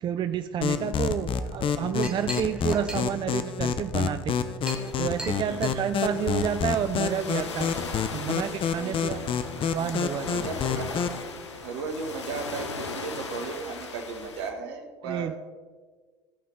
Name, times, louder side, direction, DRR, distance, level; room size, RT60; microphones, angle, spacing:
voice 1, 0.0-7.7 8.1-9.3 9.7-10.3 15.0-15.4, right 8 dB, 35° right, 10 dB, 0.4 m, -30 dB
sound 1, 0.6-11.2, left 7 dB, 40° left, 0.7 m, -28 dB
Chink clink, 1.5-6.9, right 1 dB, 5° right, 1.9 m, -41 dB
sound 2, 4.7-14.5, left 4 dB, 90° left, 0.9 m, -39 dB
voice 2, 5.5-5.8 8.8-9.4 10.2-11.3 11.6-15.3, right 4 dB, 70° right, 5 dB, 1.3 m, -36 dB
14.5 x 5.5 x 3.8 m, 1.5 s
hypercardioid pair, 70°, 14 cm